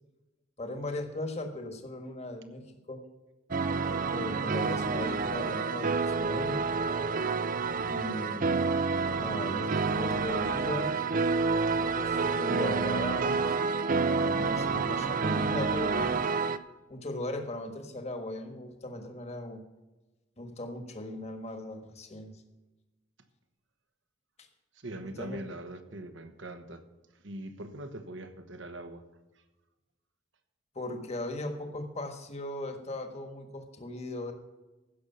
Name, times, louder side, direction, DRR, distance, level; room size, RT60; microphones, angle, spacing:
voice 1, 0.6-3.0 4.1-6.6 7.8-10.9 11.8-13.6 14.1-16.2 16.9-19.6 20.4-22.4 24.4-24.5 25.2-25.4 30.7-34.3, left 1 dB, 30° left, 6 dB, 1.5 m, -38 dB
sound 1, 3.5-16.6, right 4 dB, 40° right, 0.5 m, -29 dB
voice 2, 24.7-26.8 27.1-29.1, right 1 dB, 70° right, 9 dB, 1.2 m, -42 dB
15.5 x 6.7 x 5.7 m, 1.1 s
head